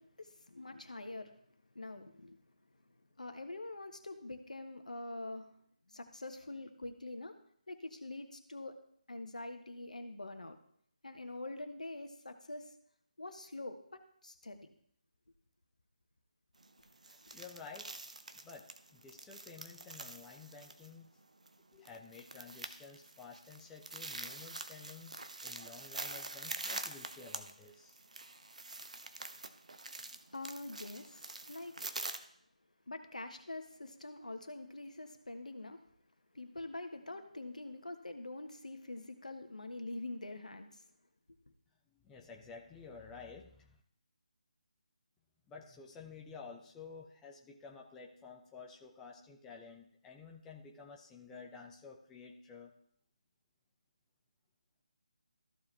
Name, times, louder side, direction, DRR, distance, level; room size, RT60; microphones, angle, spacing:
voice 1, 0.0-1.3 1.7-2.4 3.2-5.5 5.9-7.4 7.7-8.8 9.1-10.6 11.0-12.7 13.2-14.7 30.3-31.7 32.9-35.8 36.3-40.8, left 2 dB, 70° left, 6 dB, 1.3 m, -45 dB
sound 1, 16.6-32.2, right 2 dB, 65° right, 0.8 m, -46 dB
voice 2, 17.1-17.9 18.4-21.1 21.7-28.0 41.9-43.8 45.5-52.7, left 5 dB, 10° left, 0 dB, 0.7 m, -52 dB
14.0 x 4.8 x 3.3 m, 0.65 s
figure-of-eight pair, 150°, 4 cm